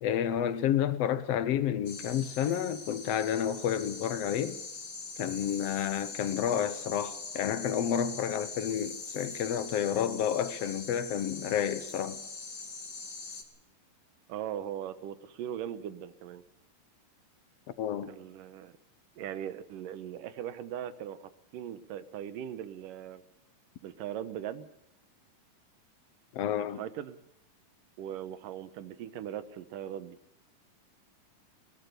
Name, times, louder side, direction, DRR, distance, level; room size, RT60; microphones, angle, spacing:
voice 1, 0.0-4.6 5.2-12.2 17.8-18.1 26.3-26.8, left 9 dB, 70° left, 1.6 m, -30 dB
sound 1, 1.9-13.4, left 4 dB, 30° left, 2.2 m, -42 dB
voice 2, 14.3-16.4 18.1-18.7 19.2-23.2 23.8-24.7 26.6-27.2 28.0-30.2, right 10 dB, 75° right, 2.7 m, -39 dB
22.0 x 19.5 x 6.8 m
omnidirectional pair, 4.0 m